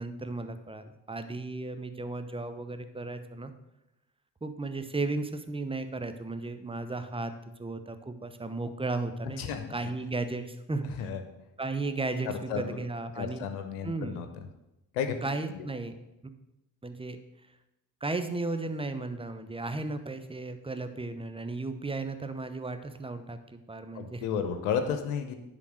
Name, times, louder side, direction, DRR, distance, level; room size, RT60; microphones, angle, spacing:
voice 1, 0.0-3.5 4.4-7.3 7.6-11.1 11.6-13.4 13.8-14.2 15.2-15.9 16.8-17.2 18.0-24.3, right 3 dB, 10° right, 10 dB, 0.9 m, -35 dB
voice 2, 9.4-9.8 11.0-11.2 12.2-12.8 13.2-14.3 14.9-15.1 15.5-15.7 23.9-25.4, left 7 dB, 85° left, 7 dB, 0.9 m, -32 dB
10.0 x 3.8 x 6.4 m, 0.93 s
hypercardioid pair, 50°, 47 cm